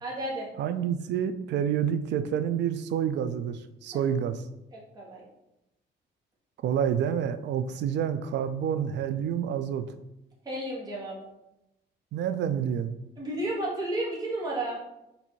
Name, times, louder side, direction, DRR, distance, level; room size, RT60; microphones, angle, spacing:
voice 1, 0.0-0.5 3.9-4.0 4.7-5.2 10.4-11.2 13.2-14.8, right 1 dB, 20° right, -4 dB, 1.2 m, -32 dB
voice 2, 0.6-4.4 6.6-9.9 12.1-12.9, right 8 dB, 65° right, 11 dB, 0.4 m, -28 dB
4.1 x 2.6 x 4.5 m, 0.89 s
cardioid pair, 125°, 19 cm